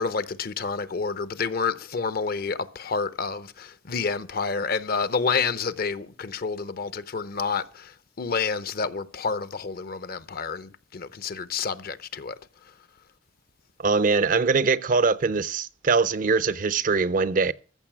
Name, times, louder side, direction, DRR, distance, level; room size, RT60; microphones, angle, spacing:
voice 1, 0.0-12.4, left 5 dB, 55° left, 0.7 m, -29 dB
voice 2, 13.8-17.5, right 4 dB, 45° right, 0.5 m, -22 dB
14.5 x 6.9 x 6.0 m
head